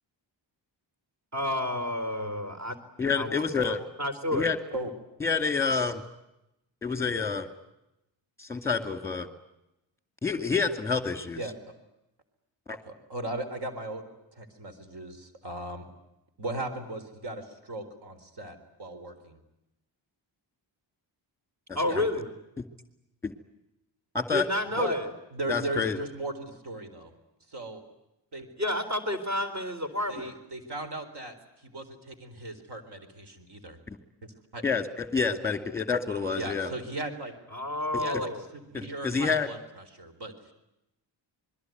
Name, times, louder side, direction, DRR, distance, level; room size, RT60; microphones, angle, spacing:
voice 1, 1.3-2.8 3.1-3.3 3.6-4.5 21.8-22.3 24.3-25.1 28.6-30.3 37.5-38.4, left 1 dB, 35° right, 7 dB, 4.1 m, -30 dB
voice 2, 3.0-3.8 4.3-4.6 5.2-6.0 6.8-7.5 8.4-9.3 10.2-11.4 22.0-22.1 23.2-23.3 24.1-24.4 25.5-26.0 33.9-34.0 34.6-36.7 38.7-39.5, left 5 dB, 5° left, 9 dB, 2.3 m, -28 dB
voice 3, 12.9-14.1 14.3-15.9 16.4-19.4 21.8-22.0 24.7-25.0 25.3-27.1 27.5-27.8 28.3-28.5 30.1-33.8 34.2-34.6 36.3-37.3 38.0-40.5, right 2 dB, 60° right, 8 dB, 4.2 m, -37 dB
27.0 x 21.5 x 9.3 m, 0.89 s
wide cardioid pair, 170°, 46 cm